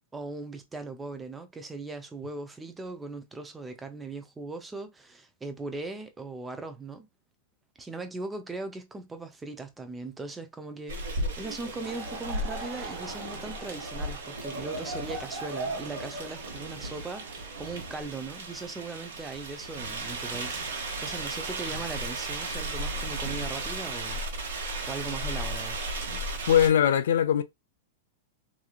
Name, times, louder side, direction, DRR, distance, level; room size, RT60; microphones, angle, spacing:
voice 1, 0.1-7.1 7.8-25.8, right 3 dB, 10° right, 0.3 m, -39 dB
sound 1, 10.9-26.7, right 2 dB, 80° right, 1.1 m, -35 dB
Laughter / Crowd, 11.7-18.1, right 2 dB, 35° right, 0.8 m, -40 dB
voice 2, 26.5-27.4, left 9 dB, 75° left, 0.3 m, -21 dB
2.9 x 2.4 x 2.3 m
supercardioid pair, 165°, 0 cm